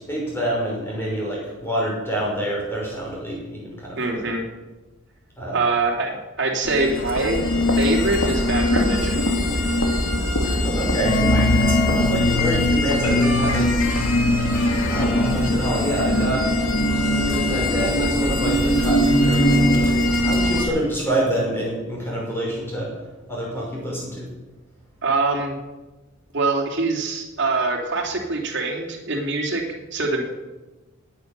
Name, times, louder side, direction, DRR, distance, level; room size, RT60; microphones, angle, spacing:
voice 1, 0.1-4.3 5.4-5.6 10.4-13.7 14.5-16.5 17.1-22.9 23.3-24.3, right 1 dB, 10° left, -4 dB, 5.5 m, -27 dB
voice 2, 4.0-4.4 5.5-7.4 7.8-9.2 25.0-25.6 26.3-29.6 29.9-30.2, right 3 dB, 50° right, 1 dB, 2.9 m, -24 dB
sound 1, 6.6-20.6, left 1 dB, 75° left, 2.4 m, -22 dB
sound 2, 11.0-19.9, equal, 50° left, 1.3 m, -23 dB
17.5 x 9.7 x 6.9 m, 1.1 s
head